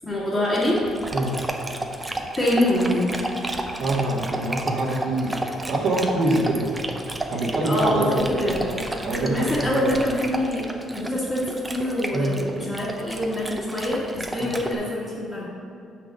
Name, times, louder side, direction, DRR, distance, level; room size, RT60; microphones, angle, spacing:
voice 1, 0.0-0.8 2.4-3.1 7.6-8.6 9.2-10.7 10.9-15.5, left 1 dB, 25° left, -10 dB, 1.8 m, -25 dB
Dog, 0.5-14.7, right 1 dB, 15° right, 0.7 m, -32 dB
voice 2, 3.8-5.3 5.7-6.7 7.3-8.5 9.0-9.9 12.1-12.4 14.4-14.5, right 2 dB, 65° right, -5 dB, 1.7 m, -24 dB
6.1 x 5.9 x 5.4 m, 2.6 s
cardioid pair, 110°, 0 cm